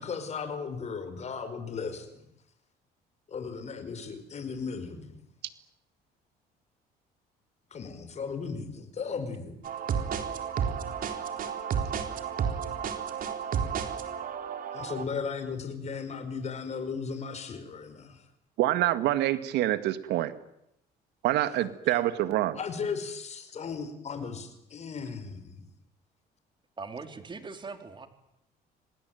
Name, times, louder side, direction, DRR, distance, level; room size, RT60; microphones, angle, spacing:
voice 1, 0.0-2.3 3.3-5.2 7.7-9.6 14.7-18.2 21.9-22.0 22.6-25.6, left 5 dB, 40° left, 9 dB, 5.1 m, -36 dB
sound 1, 9.6-15.0, right 7 dB, 55° right, 3.9 m, -32 dB
voice 2, 18.6-20.3 21.2-22.6, right 14 dB, 85° right, 12 dB, 2.0 m, -26 dB
voice 3, 26.8-28.1, right 4 dB, 30° right, 8 dB, 3.6 m, -40 dB
27.0 x 19.5 x 9.3 m, 0.78 s
cardioid pair, 110°, 17 cm